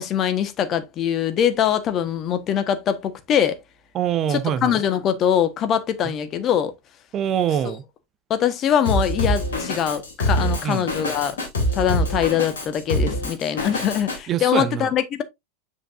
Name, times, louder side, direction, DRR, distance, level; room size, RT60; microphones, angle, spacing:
voice 1, 0.0-3.6 4.3-6.7 8.3-11.4 11.7-15.2, left 9 dB, 30° left, 1.1 m, -23 dB
voice 2, 3.9-4.8 6.0-6.1 7.1-7.8 10.6-10.9 14.3-14.9, right 9 dB, 30° right, 0.8 m, -24 dB
Drum kit, 8.9-14.2, equal, 65° left, 2.7 m, -24 dB
7.7 x 6.4 x 2.5 m
figure-of-eight pair, 90°, 0 cm